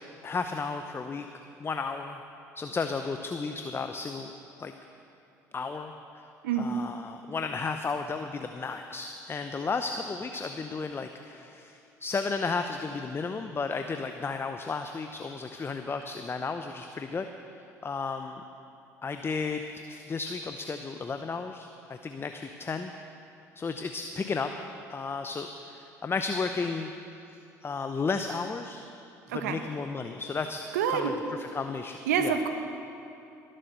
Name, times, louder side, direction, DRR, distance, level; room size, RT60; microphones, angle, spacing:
voice 1, 0.2-1.3 1.6-2.2 2.5-4.3 4.6-4.7 5.5-6.3 6.5-17.3 17.8-18.4 19.0-22.9 23.6-24.5 24.9-26.9 27.3-28.8 29.3-32.4, left 4 dB, 25° left, 7 dB, 0.7 m, -33 dB
voice 2, 30.7-31.1 32.1-32.5, right 8 dB, 80° right, 7 dB, 1.1 m, -27 dB
21.0 x 7.6 x 6.7 m, 2.7 s
hypercardioid pair, 60°, 9 cm